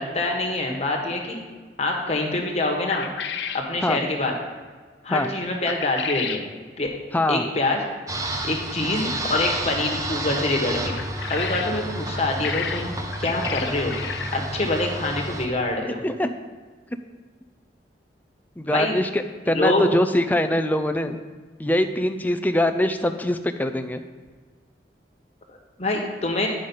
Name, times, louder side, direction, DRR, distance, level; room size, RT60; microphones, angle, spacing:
voice 1, 0.0-1.4 1.8-3.1 3.5-4.3 5.0-6.4 6.8-7.0 7.3-7.8 8.4-11.0 11.3-12.9 13.2-14.0 14.3-16.0 18.7-19.0 19.4-19.9 25.8-26.5, left 2 dB, 40° left, 0 dB, 1.3 m, -25 dB
sound 1, 2.9-3.7 5.7-6.4 10.8-11.7 12.1-14.5, left 7 dB, 85° left, 0.6 m, -32 dB
voice 2, 7.1-7.5 16.0-16.3 18.6-21.2 21.6-24.0, left 1 dB, 10° left, 8 dB, 0.4 m, -23 dB
sound 2, 8.1-15.5, right 1 dB, 20° right, 0.7 m, -30 dB
10.5 x 5.2 x 5.5 m, 1.5 s
head